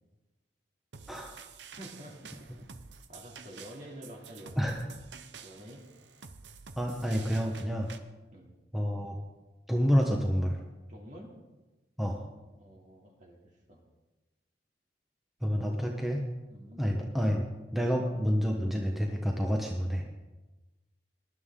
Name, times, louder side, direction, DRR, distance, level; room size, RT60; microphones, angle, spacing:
sound 1, 0.9-8.0, right 6 dB, 80° right, 0.9 m, -50 dB
voice 1, 1.7-2.3 2.6-2.7 3.1-4.7 5.4-5.8 8.3-8.5 10.9-11.3 12.5-13.4 13.7-13.8 16.5-16.8, equal, 45° right, -1 dB, 2.8 m, -48 dB
voice 2, 6.8-7.9 8.7-9.1 9.7-10.6 12.0-12.2 15.4-16.2 16.8-17.5 17.7-20.0, equal, ahead, 0 dB, 1.1 m, -28 dB
19.0 x 11.5 x 3.8 m, 1.1 s
head